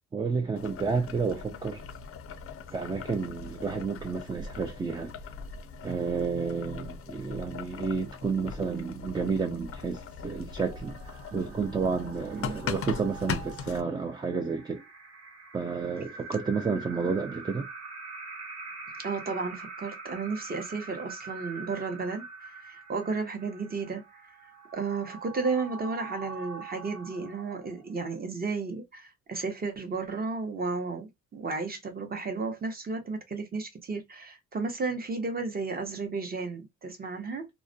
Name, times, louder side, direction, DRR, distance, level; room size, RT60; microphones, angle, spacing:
voice 1, 0.1-1.8 2.7-5.2 5.8-14.8 15.5-17.7, right 5 dB, 15° right, 0.3 m, -31 dB
Boiling, 0.6-13.8, left 6 dB, 50° left, 0.5 m, -40 dB
sound 1, 10.6-28.0, right 4 dB, 55° right, 1.1 m, -45 dB
voice 2, 19.0-24.2 24.7-37.5, right 4 dB, 30° right, 0.8 m, -33 dB
2.3 x 2.1 x 2.5 m
cardioid pair, 90°, 30 cm